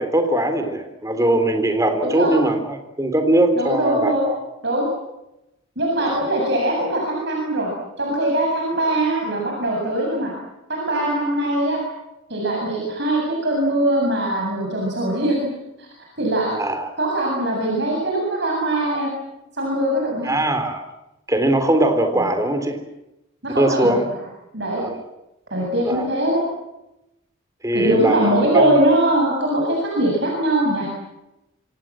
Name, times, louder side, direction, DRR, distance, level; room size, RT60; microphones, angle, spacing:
voice 1, 0.0-4.4 6.0-6.2 16.5-16.9 20.2-20.8 21.3-22.8 23.6-24.0 24.7-25.0 25.8-26.1 27.6-28.7, right 1 dB, 15° right, 7 dB, 3.5 m, -20 dB
voice 2, 3.5-4.2 4.6-4.9 5.8-7.7 8.0-10.3 10.7-11.8 12.3-15.4 15.8-15.9 16.2-16.5 17.0-19.1 19.6-20.3 23.4-23.9 24.5-24.9 25.5-26.4 27.7-30.9, right 1 dB, 55° right, -1 dB, 7.8 m, -21 dB
27.0 x 26.0 x 7.7 m, 0.90 s
head